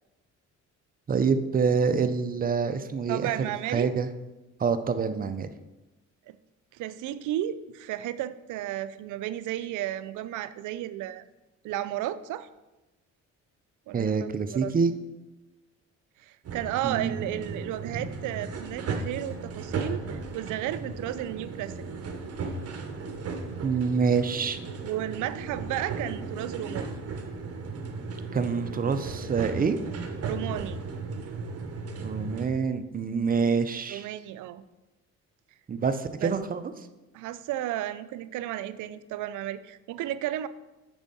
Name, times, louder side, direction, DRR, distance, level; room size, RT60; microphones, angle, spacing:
voice 1, 1.1-4.1 4.6-5.5 13.9-14.9 16.8-17.2 23.6-24.6 28.3-29.8 32.0-34.0 35.7-36.6, right 5 dB, 30° right, 10 dB, 0.6 m, -26 dB
voice 2, 3.1-3.9 6.3-6.4 6.7-11.2 11.6-12.5 13.9-14.7 16.2-21.8 24.8-26.9 30.2-30.8 33.9-34.6 36.2-36.3 37.1-40.5, right 13 dB, 80° right, 14 dB, 0.5 m, -33 dB
sound 1, 16.4-32.5, right 4 dB, 55° right, 1.0 m, -36 dB
7.0 x 5.5 x 4.1 m, 1.1 s
cardioid pair, 90°, 30 cm